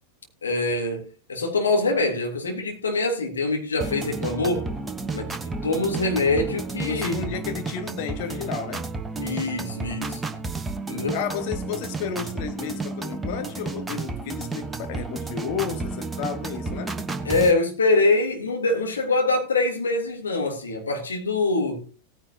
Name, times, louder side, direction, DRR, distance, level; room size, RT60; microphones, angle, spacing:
voice 1, 0.4-4.7 5.1-5.4 5.6-7.1 9.2-10.2 10.9-11.2 17.2-21.8, left 2 dB, 75° left, 3.2 m, -24 dB
sound 1, 3.8-17.5, right 3 dB, 10° right, 1.2 m, -32 dB
voice 2, 6.8-8.9 11.0-16.9, left 7 dB, 45° left, 2.0 m, -32 dB
18.0 x 10.0 x 2.9 m
figure-of-eight pair, 90°, 0 cm